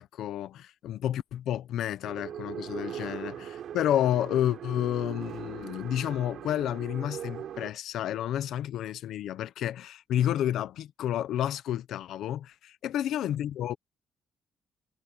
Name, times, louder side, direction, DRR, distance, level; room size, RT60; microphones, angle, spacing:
voice 1, 0.0-13.8, left 11 dB, 80° left, 1.1 m, -30 dB
sound 1, 2.0-7.7, right 10 dB, 70° right, 6.6 m, -40 dB
cardioid pair, 90°, 0 cm